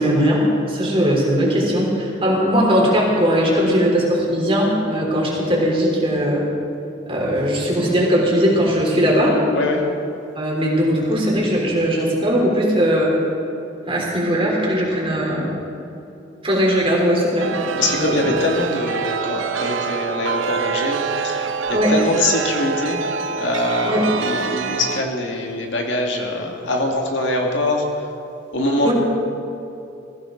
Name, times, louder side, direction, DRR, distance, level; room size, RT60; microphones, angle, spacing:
voice 1, 0.0-6.4 7.1-9.4 10.4-13.1 13.9-15.5 16.4-18.3 21.7-21.9 23.8-24.1 28.8-28.9, equal, 30° right, -3 dB, 3.4 m, -19 dB
voice 2, 9.5-9.9 17.8-23.0 23.3-27.9 28.5-28.9, left 1 dB, 65° left, 0 dB, 2.0 m, -23 dB
Chime, 17.4-25.0, right 5 dB, 75° right, 0.7 m, -26 dB
21.5 x 15.5 x 3.9 m, 2.8 s
head